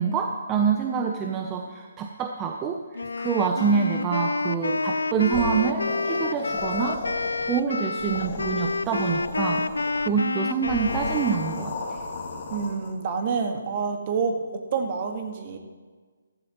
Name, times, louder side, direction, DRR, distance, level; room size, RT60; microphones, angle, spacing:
voice 1, 0.0-7.0 7.4-9.6 10.0-12.0, right 6 dB, 20° right, 3 dB, 0.8 m, -26 dB
Wind instrument woodwind instrument, 2.9-11.7, left 3 dB, 85° left, 0.4 m, -29 dB
sound 1, 5.3-7.6 7.9-10.1 10.6-12.9, left 3 dB, 45° left, 2.2 m, -34 dB
voice 2, 12.5-14.4 14.7-15.6, right 5 dB, 40° right, 4 dB, 1.6 m, -27 dB
14.5 x 13.5 x 3.1 m, 1.4 s
figure-of-eight pair, 150°, 0 cm